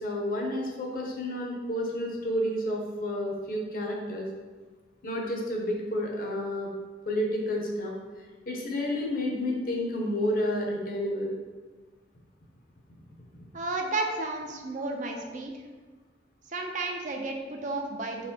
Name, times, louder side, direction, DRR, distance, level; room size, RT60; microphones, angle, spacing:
voice 1, 0.0-4.3 5.0-6.7 7.1-7.9 8.5-11.3, left 1 dB, 50° left, -1 dB, 0.7 m, -30 dB
voice 2, 13.5-15.5 16.5-18.3, right 2 dB, 45° right, 2 dB, 0.4 m, -32 dB
4.0 x 3.5 x 2.8 m, 1.4 s
head